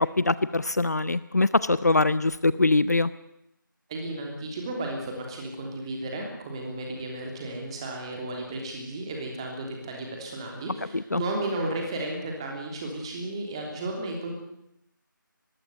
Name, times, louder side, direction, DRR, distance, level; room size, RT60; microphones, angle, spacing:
voice 1, 0.0-3.1 10.9-11.2, left 2 dB, 50° left, 17 dB, 0.7 m, -23 dB
voice 2, 3.9-14.3, right 2 dB, 15° right, 1 dB, 3.1 m, -33 dB
21.0 x 16.0 x 9.3 m, 0.79 s
figure-of-eight pair, 165°, 11 cm